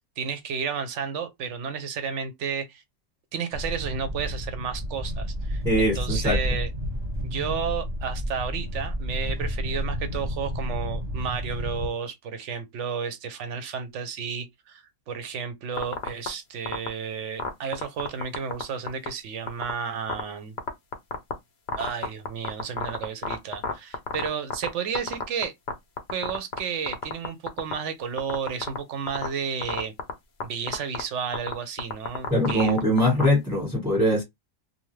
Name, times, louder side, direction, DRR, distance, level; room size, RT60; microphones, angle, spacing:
voice 1, 0.2-2.8 3.3-6.7 7.2-20.6 21.7-25.5 26.1-29.9 30.4-32.8, right 6 dB, 65° right, 0.9 m, -32 dB
sound 1, 3.5-11.9, equal, 35° right, 0.9 m, -31 dB
voice 2, 5.6-6.4 32.3-34.2, equal, 5° right, 1.1 m, -22 dB
sound 2, 15.8-16.3 16.7-16.9 17.4-18.6 18.9-19.1 19.5-19.7 20.1-20.2 20.6-21.3 21.7-24.7 24.9-25.7 26.0-26.6 26.9-27.7 28.2-28.8 29.1-29.3 29.6-30.1 30.4-30.5 30.7-31.0 31.3-33.3, left 5 dB, 55° left, 0.6 m, -28 dB
2.7 x 2.2 x 3.1 m
omnidirectional pair, 1.5 m